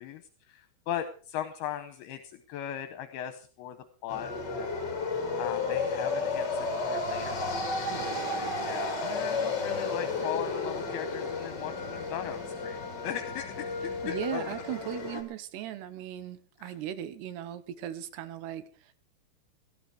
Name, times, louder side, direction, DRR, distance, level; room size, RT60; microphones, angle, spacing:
voice 1, 0.0-3.8 4.0-4.9 5.4-7.8 8.2-14.6 16.6-16.7, left 10 dB, 75° left, 9 dB, 2.7 m, -38 dB
sound 1, 4.1-15.2, left 3 dB, 30° left, 2.5 m, -32 dB
Thunder, 7.1-13.1, right 4 dB, 50° right, 1.5 m, -48 dB
voice 2, 14.0-18.9, right 12 dB, 85° right, 13 dB, 3.0 m, -38 dB
17.5 x 12.0 x 4.8 m, 0.40 s
omnidirectional pair, 4.7 m